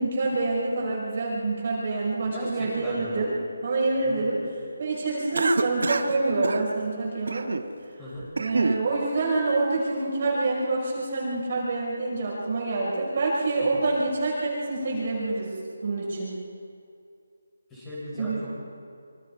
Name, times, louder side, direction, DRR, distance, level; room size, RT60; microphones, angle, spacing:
voice 1, 0.0-3.3 3.6-4.4 4.8-7.5 8.4-15.5 15.8-16.3 18.2-18.5, right 3 dB, 40° right, -4 dB, 5.5 m, -26 dB
voice 2, 2.2-3.2 4.0-4.3 8.0-8.3 13.7-13.8 17.7-18.5, equal, 5° left, -9 dB, 7.1 m, -36 dB
Cough, 5.3-6.1 6.4-6.6 7.3-7.7 8.1-8.8, right 3 dB, 65° right, 1.3 m, -27 dB
26.0 x 25.0 x 4.8 m, 2.3 s
figure-of-eight pair, 175°, 0 cm